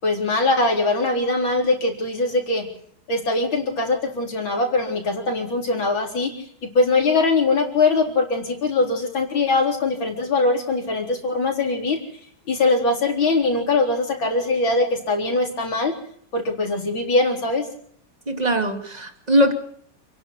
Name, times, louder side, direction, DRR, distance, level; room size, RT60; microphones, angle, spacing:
voice 1, 0.0-2.7 3.1-12.0 12.5-15.9 16.3-17.6, left 3 dB, 70° left, 2 dB, 4.9 m, -22 dB
voice 2, 18.3-19.5, equal, 20° right, 6 dB, 2.6 m, -20 dB
28.5 x 11.5 x 8.1 m, 0.62 s
omnidirectional pair, 2.2 m